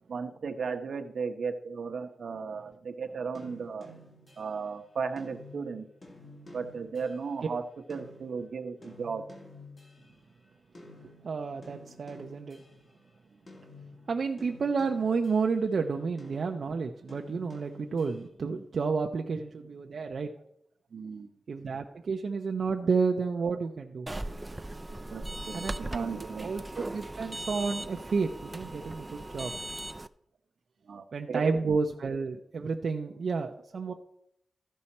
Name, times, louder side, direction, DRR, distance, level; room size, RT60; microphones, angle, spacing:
voice 1, 0.1-3.9 4.4-5.8 6.5-7.6 7.9-9.2 20.9-21.3 25.1-26.5 30.9-31.6, right 5 dB, 85° right, 6 dB, 0.9 m, -35 dB
sound 1, 3.3-10.5 10.7-13.1 13.5-15.7 16.2-18.3, left 2 dB, 45° left, 1.7 m, -52 dB
voice 2, 11.0-12.6 14.1-20.3 21.5-24.1 25.5-26.1 26.3-29.5 31.1-33.9, right 4 dB, 70° right, 3 dB, 0.6 m, -31 dB
sound 2, 24.1-30.1, right 2 dB, 20° right, 0.4 m, -39 dB
14.0 x 5.5 x 4.2 m, 0.74 s
wide cardioid pair, 105°, 0 cm